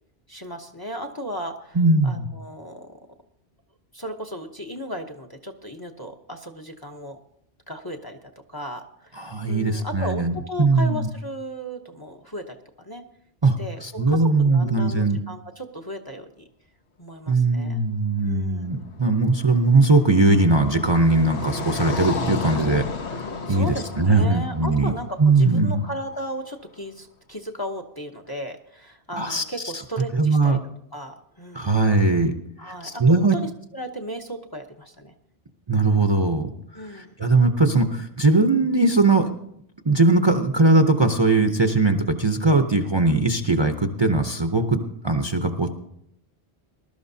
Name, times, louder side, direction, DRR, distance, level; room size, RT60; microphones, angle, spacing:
voice 1, 0.3-1.8 2.0-3.0 3.9-7.2 7.7-9.2 9.5-13.0 13.6-16.5 17.0-17.8 18.2-18.7 23.5-30.6 30.9-31.7 32.6-35.1 36.7-37.1, equal, 25° left, 5 dB, 0.8 m, -35 dB
voice 2, 1.8-2.3 9.2-11.1 13.4-15.2 17.3-22.9 23.5-24.9 25.2-25.8 29.1-29.4 30.1-30.6 31.5-32.3 32.7-33.4 35.7-36.5 36.9-39.3 39.8-45.7, right 3 dB, 30° right, 5 dB, 0.7 m, -20 dB
Car passing by, 18.9-26.1, left 4 dB, 80° left, 1.3 m, -33 dB
20.5 x 12.5 x 2.7 m, 0.74 s
omnidirectional pair, 1.1 m